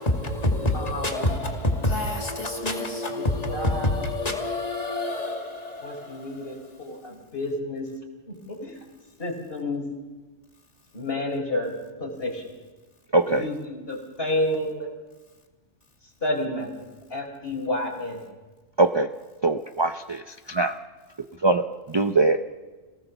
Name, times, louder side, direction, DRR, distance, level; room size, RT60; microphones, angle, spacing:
voice 1, 0.0-6.8, left 1 dB, 30° left, 2.7 m, -27 dB
voice 2, 0.7-1.3 3.2-3.9 5.8-7.9 8.3-8.7 9.2-9.9 10.9-11.7 12.0-12.4 13.3-14.9 16.2-16.7 17.1-18.2, left 1 dB, 50° left, 4.7 m, -30 dB
voice 3, 13.1-13.5 18.8-19.1 19.4-20.8 21.4-22.5, right 2 dB, 25° right, 0.6 m, -22 dB
27.5 x 18.0 x 7.1 m
omnidirectional pair, 1.3 m